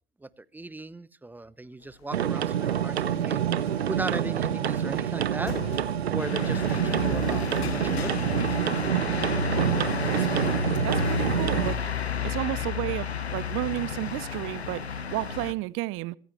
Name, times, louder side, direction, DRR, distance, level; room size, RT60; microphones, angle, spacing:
voice 1, 0.2-8.4 10.1-10.5, right 2 dB, 5° right, 0.8 m, -38 dB
sound 1, 1.8-8.9, left 7 dB, 70° left, 2.1 m, -45 dB
sound 2, 2.1-11.7, right 10 dB, 80° right, 0.9 m, -27 dB
sound 3, 6.2-15.5, left 6 dB, 90° left, 1.2 m, -31 dB
voice 2, 10.1-10.5 10.8-11.8 12.2-16.2, right 20 dB, 40° right, 0.7 m, -32 dB
24.5 x 15.5 x 3.1 m
figure-of-eight pair, 85°, 31 cm